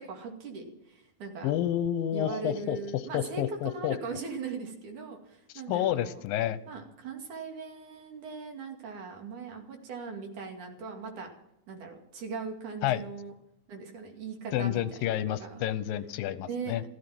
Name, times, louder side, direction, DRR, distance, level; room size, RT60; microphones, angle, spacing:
voice 1, 0.0-1.6 2.1-6.2 6.7-11.3 11.7-13.3 13.7-15.7 16.5-16.8, right 4 dB, 65° right, 2 dB, 3.7 m, -40 dB
voice 2, 1.4-2.8 3.1-4.0 5.7-6.6 12.8-13.0 14.5-16.8, left 11 dB, 85° left, 14 dB, 2.5 m, -29 dB
15.0 x 14.5 x 6.0 m, 0.80 s
omnidirectional pair, 4.0 m